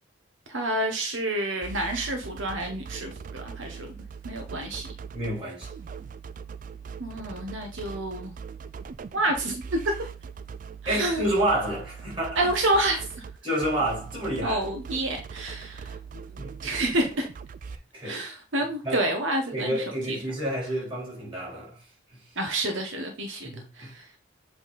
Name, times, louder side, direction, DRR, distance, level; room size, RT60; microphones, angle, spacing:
voice 1, 0.5-3.9 4.2-4.9 7.0-8.3 9.1-10.1 10.8-11.3 12.3-13.2 14.4-15.9 16.6-17.3 18.0-20.2 22.4-24.1, right 1 dB, 75° right, 1.1 m, -29 dB
sound 1, 1.6-17.7, right 6 dB, 40° right, 0.3 m, -41 dB
voice 2, 5.1-5.7 10.9-12.5 13.4-14.6 16.1-16.6 17.9-18.3 18.8-19.0 19.5-21.8 22.1-22.2 23.4-23.9, right 1 dB, 25° right, 3.7 m, -29 dB
7.9 x 3.7 x 4.0 m
head